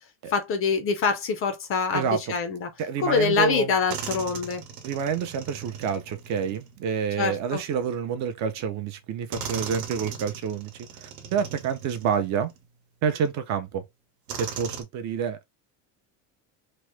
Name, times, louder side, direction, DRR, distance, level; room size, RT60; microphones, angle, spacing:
voice 1, 0.3-2.7 3.0-4.6 7.2-7.6, left 5 dB, 35° left, 0.4 m, -25 dB
voice 2, 1.9-2.4 2.8-3.7 4.8-10.7 11.0-12.5 13.0-13.8 14.4-15.4, right 7 dB, 45° right, 0.5 m, -28 dB
sound 1, 3.2-3.3 3.9-7.5 8.5-8.6 9.3-12.6 13.3-13.4 14.3-14.8, right 7 dB, 80° right, 1.0 m, -38 dB
3.0 x 2.0 x 3.1 m
cardioid pair, 170°, 40 cm